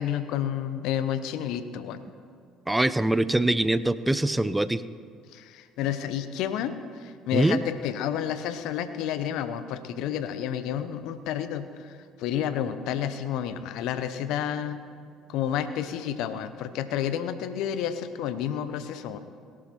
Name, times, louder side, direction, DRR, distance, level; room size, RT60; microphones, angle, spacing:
voice 1, 0.0-2.0 5.3-14.8 15.3-19.2, left 9 dB, 65° left, 11 dB, 0.8 m, -30 dB
voice 2, 2.7-4.8 7.3-7.6, right 1 dB, 10° right, 15 dB, 0.5 m, -23 dB
17.5 x 11.5 x 4.4 m, 2.3 s
hypercardioid pair, 55°, 0 cm